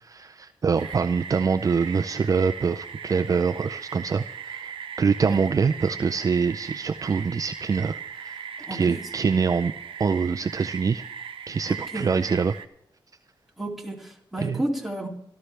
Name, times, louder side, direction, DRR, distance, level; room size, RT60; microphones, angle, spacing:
voice 1, 0.0-8.4 8.7-9.7 10.0-11.0 11.5-12.5 14.4-14.6, right 5 dB, 40° right, 9 dB, 0.5 m, -25 dB
sound 1, 0.8-12.6, right 7 dB, 90° right, 0.9 m, -38 dB
voice 2, 8.6-9.1 11.6-12.2 13.6-15.1, right 1 dB, ahead, -2 dB, 2.8 m, -32 dB
26.0 x 13.0 x 3.4 m, 0.67 s
wide cardioid pair, 125°, 9 cm